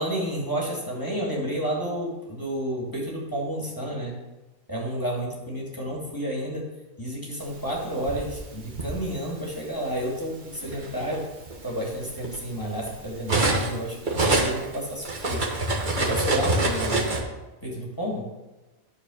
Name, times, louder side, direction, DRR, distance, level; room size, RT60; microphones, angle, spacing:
voice 1, 0.0-4.1 4.7-6.6 7.0-11.2 11.6-15.4 16.0-17.1 17.6-18.2, right 1 dB, 15° left, -4 dB, 2.5 m, -30 dB
Cutlery silverware, 7.7-9.0 9.9-10.1 10.5-13.8 14.0-17.2, right 2 dB, 35° right, 1.6 m, -26 dB
12.5 x 4.7 x 6.5 m, 1.1 s
omnidirectional pair, 1.4 m